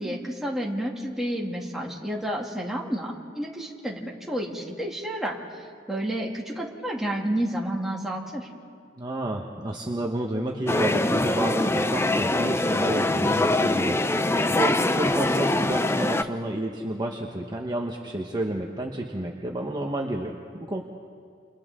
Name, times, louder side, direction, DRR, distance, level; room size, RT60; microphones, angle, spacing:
voice 1, 0.0-8.5, right 1 dB, ahead, -3 dB, 2.6 m, -30 dB
voice 2, 9.0-20.8, right 1 dB, 25° right, 0 dB, 1.2 m, -31 dB
sound 1, 10.7-16.2, left 2 dB, 15° left, 0.6 m, -23 dB
29.5 x 29.0 x 3.8 m, 2.3 s
head